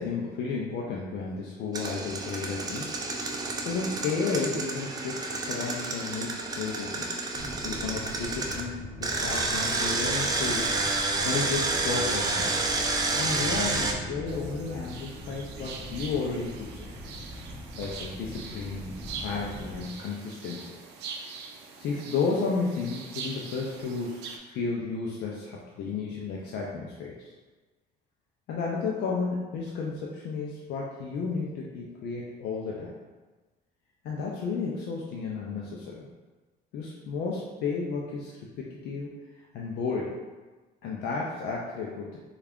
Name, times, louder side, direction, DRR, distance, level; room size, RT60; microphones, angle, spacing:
voice 1, 0.0-2.9 3.6-7.1 7.6-10.7 11.2-12.5 13.1-16.9 17.8-20.7 21.8-27.3 28.5-32.9 34.0-36.0 36.7-39.1 39.5-40.2 40.8-42.2, left 4 dB, 75° left, -3 dB, 0.5 m, -32 dB
Engine, 1.7-8.6 9.0-13.9, right 3 dB, 20° right, 0.4 m, -29 dB
sound 1, 7.3-19.9, equal, 15° left, 0.8 m, -42 dB
sound 2, 14.3-24.4, right 5 dB, 85° right, 0.5 m, -43 dB
3.3 x 2.4 x 3.5 m, 1.3 s
cardioid pair, 110°, 17 cm